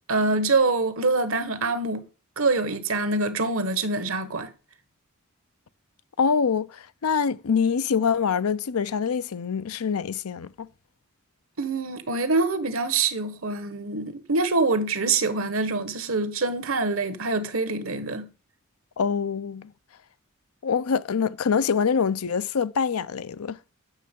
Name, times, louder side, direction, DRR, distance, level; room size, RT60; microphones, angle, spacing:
voice 1, 0.1-2.0 2.4-4.5 11.6-18.3, right 3 dB, 70° right, 1.3 m, -25 dB
voice 2, 6.2-10.7 19.0-19.7 20.6-23.6, left 6 dB, 80° left, 0.5 m, -25 dB
9.0 x 6.4 x 5.3 m
head